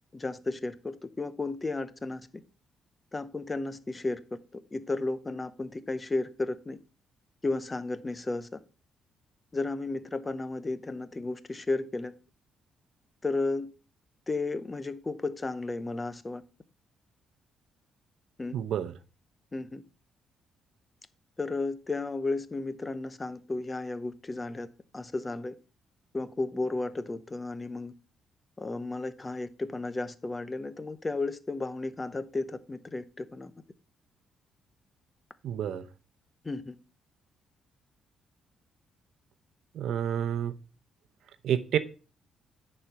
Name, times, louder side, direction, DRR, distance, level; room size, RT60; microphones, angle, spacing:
voice 1, 0.1-2.2 3.1-4.2 4.5-6.8 7.4-8.6 9.5-12.1 13.2-13.7 14.3-16.4 18.4-18.6 19.5-19.8 21.4-24.7 24.9-25.5 26.1-27.9 28.6-33.5 36.4-36.8, left 3 dB, 20° left, 0.7 m, -33 dB
voice 2, 18.5-18.9 35.4-35.8 39.7-40.5 41.4-41.8, right 9 dB, 70° right, 0.8 m, -29 dB
10.0 x 4.4 x 6.1 m
cardioid pair, 125°, 0 cm